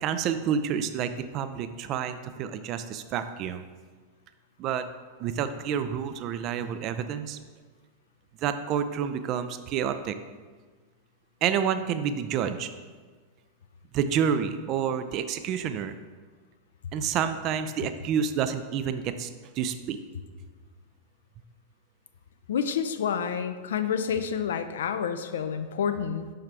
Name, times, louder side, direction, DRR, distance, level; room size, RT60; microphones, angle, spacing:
voice 1, 0.0-3.7 4.6-4.8 5.2-7.4 8.4-10.1 11.4-12.7 13.9-15.9 16.9-19.3 19.6-20.0, right 8 dB, 35° right, 10 dB, 0.4 m, -29 dB
voice 2, 22.5-26.3, left 7 dB, 60° left, 10 dB, 0.4 m, -29 dB
5.7 x 5.5 x 3.4 m, 1.4 s
figure-of-eight pair, 90°, 0 cm